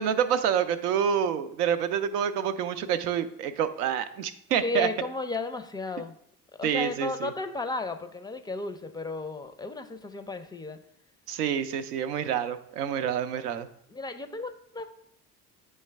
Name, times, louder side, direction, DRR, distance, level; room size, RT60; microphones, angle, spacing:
voice 1, 0.0-4.9 6.6-7.3 11.3-13.7, right 8 dB, 80° right, 10 dB, 0.5 m, -27 dB
voice 2, 4.6-6.1 6.6-10.8 13.9-14.8, left 3 dB, 10° left, 8 dB, 0.4 m, -34 dB
9.0 x 3.2 x 3.3 m, 0.71 s
hypercardioid pair, 55°, 45 cm